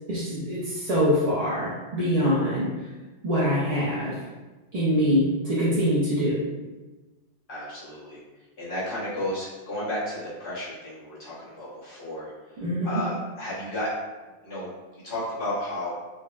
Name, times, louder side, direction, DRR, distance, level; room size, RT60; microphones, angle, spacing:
voice 1, 0.1-2.7 3.2-4.2 4.7-6.4 12.6-13.0, equal, 45° right, -8 dB, 0.5 m, -24 dB
voice 2, 7.5-13.9 14.4-15.9, left 1 dB, 50° left, -9 dB, 1.3 m, -33 dB
3.9 x 2.1 x 2.3 m, 1.2 s
omnidirectional pair, 1.2 m